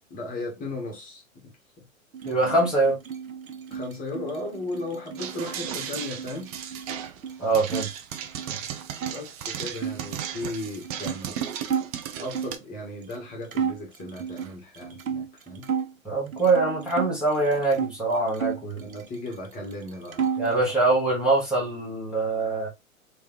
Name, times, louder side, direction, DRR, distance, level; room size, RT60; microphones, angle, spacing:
voice 1, 0.1-1.2 3.7-6.5 9.1-11.4 12.2-15.7 18.8-20.6, left 2 dB, 20° left, 1.5 m, -36 dB
sound 1, 2.1-7.9 8.2-9.2 9.7-12.6 13.1-13.2 13.5-15.9 16.3-17.9 18.3-19.5 19.7-20.6, right 7 dB, 85° right, 0.6 m, -33 dB
voice 2, 2.2-3.0 7.4-7.9 8.5-8.6 16.0-18.8 20.4-22.7, right 2 dB, ahead, 1.3 m, -23 dB
sound 2, 5.2-12.5, right 9 dB, 30° right, 0.5 m, -35 dB
3.3 x 3.2 x 2.9 m
figure-of-eight pair, 110°, 40 cm